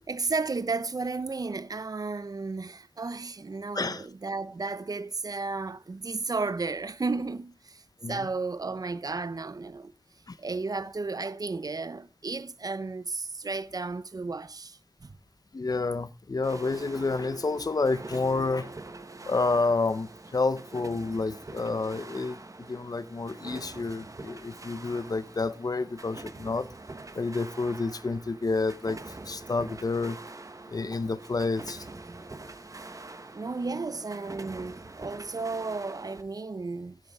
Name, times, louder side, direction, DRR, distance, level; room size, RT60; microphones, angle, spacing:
voice 1, 0.1-9.9 10.4-15.2 33.3-37.0, right 3 dB, 75° right, 0.7 m, -33 dB
voice 2, 3.7-4.0 8.0-8.3 10.3-10.4 15.5-18.7 19.3-26.7 27.1-30.2 30.7-31.9, left 3 dB, 75° left, 0.8 m, -29 dB
sound 1, 16.4-36.2, right 2 dB, 60° right, 1.2 m, -45 dB
13.0 x 10.0 x 3.6 m
wide cardioid pair, 55°, 6 cm